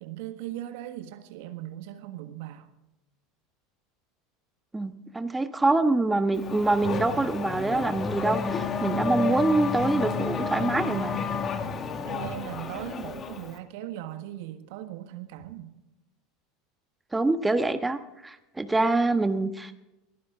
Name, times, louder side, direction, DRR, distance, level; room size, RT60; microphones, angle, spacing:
voice 1, 0.0-2.7 12.0-15.7, right 12 dB, 65° right, 1.4 m, -38 dB
voice 2, 4.7-11.2 17.1-19.7, right 2 dB, 10° right, 1.2 m, -25 dB
Race car auto racing / Accelerating revving vroom, 6.3-13.6, left 5 dB, 35° left, 1.9 m, -31 dB
22.0 x 15.5 x 3.7 m
hypercardioid pair, 80°, 0 cm